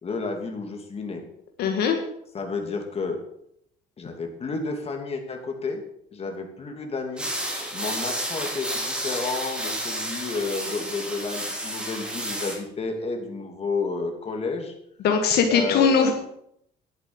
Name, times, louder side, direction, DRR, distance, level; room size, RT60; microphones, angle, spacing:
voice 1, 0.0-1.2 2.3-3.2 4.0-5.8 6.1-7.3 7.7-14.7 15.5-16.1, left 3 dB, 35° left, 3 dB, 3.1 m, -31 dB
voice 2, 1.6-2.0 15.0-16.1, left 6 dB, 75° left, 4 dB, 1.9 m, -20 dB
sound 1, 7.2-12.6, right 1 dB, 5° right, 3.3 m, -31 dB
11.5 x 8.1 x 8.0 m, 0.72 s
cardioid pair, 110°, 17 cm